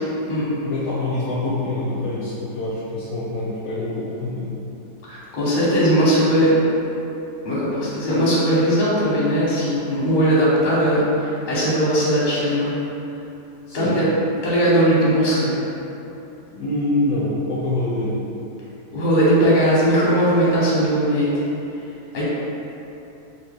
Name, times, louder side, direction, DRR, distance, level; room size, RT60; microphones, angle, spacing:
voice 1, 0.3-4.5 13.7-14.0 16.5-18.2, left 2 dB, 70° left, -7 dB, 1.0 m, -25 dB
voice 2, 5.1-6.5 7.4-12.7 13.7-14.1 14.4-15.5 18.9-21.3 22.1-22.3, equal, 35° left, -8 dB, 0.9 m, -19 dB
3.3 x 2.7 x 3.3 m, 2.9 s
omnidirectional pair, 1.8 m